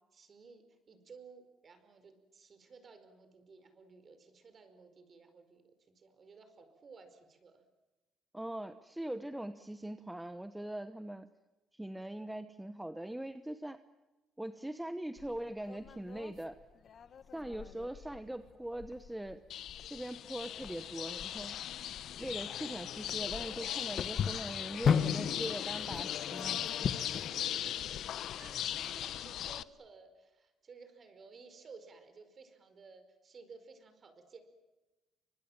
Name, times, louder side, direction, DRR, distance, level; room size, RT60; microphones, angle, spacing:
voice 1, 0.1-5.6 5.9-7.6 27.2-34.4, right 4 dB, 30° right, 9 dB, 4.9 m, -56 dB
voice 2, 8.3-11.3 11.7-13.8 14.4-16.6 17.3-19.4 19.9-21.5 22.2-26.9, right 1 dB, 5° right, 10 dB, 1.0 m, -41 dB
sound 1, 15.2-27.3, left 7 dB, 40° left, 1.5 m, -38 dB
sound 2, 19.5-29.6, left 11 dB, 60° left, 1.0 m, -39 dB
30.0 x 25.0 x 7.3 m, 1.1 s
cardioid pair, 150°, 0 cm